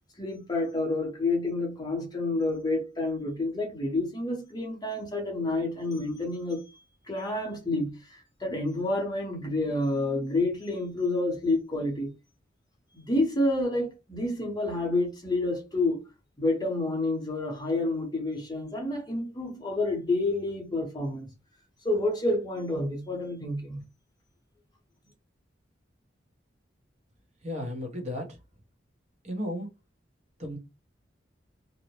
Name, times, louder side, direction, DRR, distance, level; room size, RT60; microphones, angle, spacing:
voice 1, 0.2-6.6 7.1-12.1 12.9-16.0 16.4-21.2 21.8-23.8, left 2 dB, 20° left, 0.8 m, -29 dB
voice 2, 27.4-28.3 29.2-29.7 30.4-30.6, left 1 dB, 35° right, 0.8 m, -34 dB
2.6 x 2.0 x 3.0 m
head